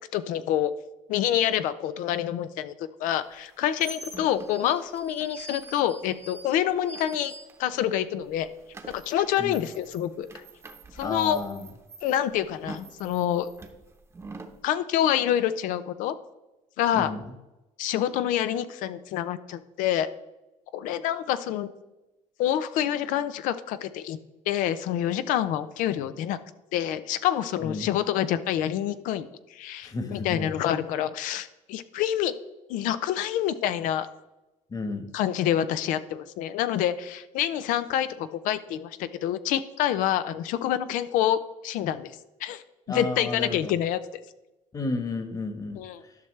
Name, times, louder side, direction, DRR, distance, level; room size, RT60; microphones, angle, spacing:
voice 1, 0.1-0.7 1.1-2.7 3.0-7.3 7.6-8.5 8.9-10.3 11.0-11.4 12.0-13.5 14.6-16.1 16.8-17.1 17.8-20.1 20.7-21.7 22.4-24.2 24.5-26.4 26.7-32.3 32.7-34.1 35.1-42.1 42.4-42.6 42.9-44.0 45.7-46.0, left 11 dB, 85° left, 12 dB, 0.5 m, -27 dB
sound 1, 3.3-7.9 8.2-14.6, right 2 dB, 20° right, 0.9 m, -45 dB
voice 2, 11.0-11.7 16.9-17.2 27.6-27.9 29.8-30.5 34.7-35.1 42.9-43.8 44.7-46.2, left 3 dB, 25° left, 7 dB, 1.2 m, -32 dB
12.0 x 5.8 x 3.2 m, 1.0 s
cardioid pair, 115°, 13 cm